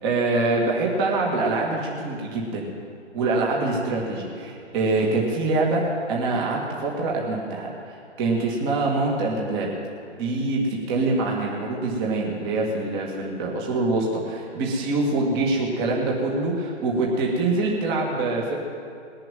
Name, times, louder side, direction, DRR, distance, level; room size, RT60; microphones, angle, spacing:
voice 1, 0.0-2.7 3.1-5.8 6.1-9.7 10.2-18.6, right 2 dB, 20° right, -2 dB, 2.0 m, -24 dB
20.0 x 7.7 x 9.1 m, 2.5 s
hypercardioid pair, 150°, 36 cm